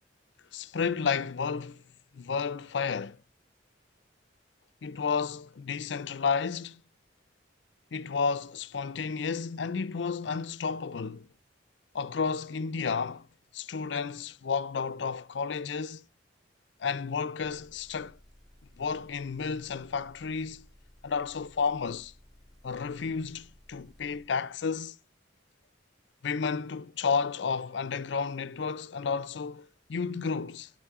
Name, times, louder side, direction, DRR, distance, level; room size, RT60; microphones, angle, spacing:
voice 1, 0.5-1.8 2.1-3.2 4.8-6.8 7.9-11.3 11.9-13.3 13.5-16.0 16.8-18.2 18.8-20.6 21.0-22.1 22.6-25.0 26.2-30.7, left 5 dB, 70° left, 0.5 m, -32 dB
Motor vehicle (road) / Engine, 17.4-24.3, left 1 dB, ahead, 1.1 m, -58 dB
9.6 x 8.6 x 3.6 m
head